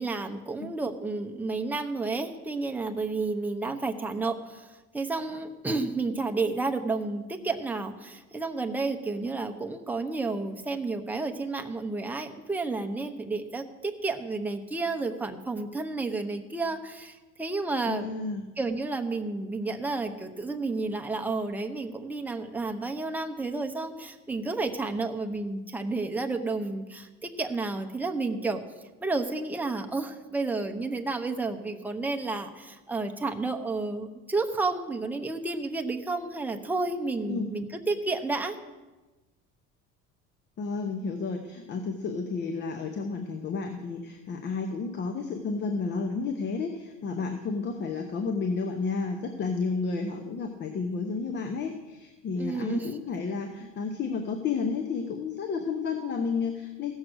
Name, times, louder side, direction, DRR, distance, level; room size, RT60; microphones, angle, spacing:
voice 1, 0.0-18.1 18.6-28.6 29.0-38.6 52.4-53.0, right 3 dB, 5° right, 3 dB, 0.8 m, -31 dB
voice 2, 17.9-18.5 37.3-37.5 40.6-56.9, left 4 dB, 35° left, 5 dB, 0.9 m, -31 dB
16.0 x 6.5 x 6.2 m, 1.2 s
cardioid pair, 140°, 31 cm